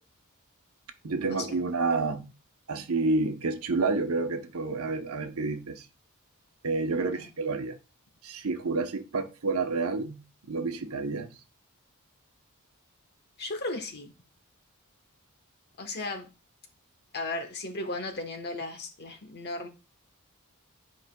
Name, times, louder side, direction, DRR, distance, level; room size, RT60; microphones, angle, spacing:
voice 1, 1.0-2.3 2.7-5.9 6.6-7.8 8.2-10.2 10.5-11.3, right 3 dB, 75° right, 0.9 m, -29 dB
voice 2, 13.4-14.1 15.8-16.3 17.1-19.7, left 2 dB, 50° left, 1.2 m, -35 dB
11.0 x 4.9 x 2.3 m
head